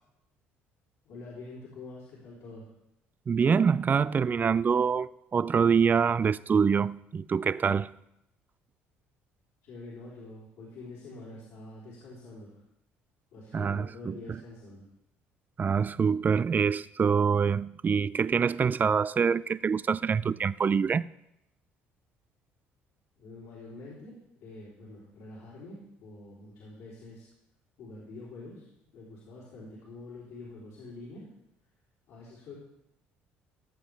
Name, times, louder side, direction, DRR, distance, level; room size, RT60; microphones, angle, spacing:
voice 1, 1.1-2.7 9.6-12.6 13.3-14.9 23.2-27.3 27.8-31.3 32.1-32.5, left 2 dB, 75° left, 3.5 m, -46 dB
voice 2, 3.3-7.9 13.5-14.4 15.6-21.0, right 6 dB, 35° right, 0.4 m, -25 dB
16.5 x 7.1 x 3.5 m
hypercardioid pair, 65°, 5 cm